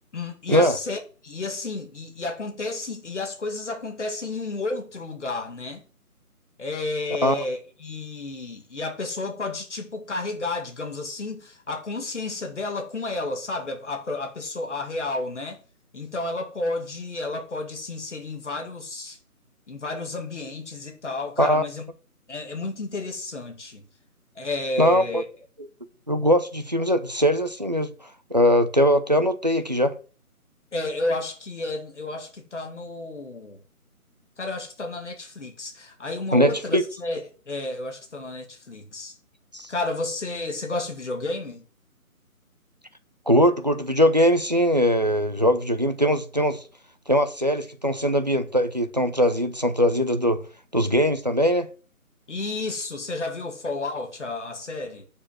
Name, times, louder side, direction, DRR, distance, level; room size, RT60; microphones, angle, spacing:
voice 1, 0.1-5.8 6.6-15.6 15.9-19.2 19.7-21.8 22.3-23.9 24.4-25.2 30.7-33.6 34.4-39.2 39.7-41.6 52.3-55.1, left 2 dB, 50° left, 2.3 m, -31 dB
voice 2, 24.8-25.2 26.1-27.9 28.3-29.9 36.3-36.8 39.5-39.7 43.3-46.6 47.1-50.4 50.7-51.7, equal, 30° right, 0.6 m, -21 dB
7.1 x 6.6 x 7.4 m
figure-of-eight pair, 170°, 45 cm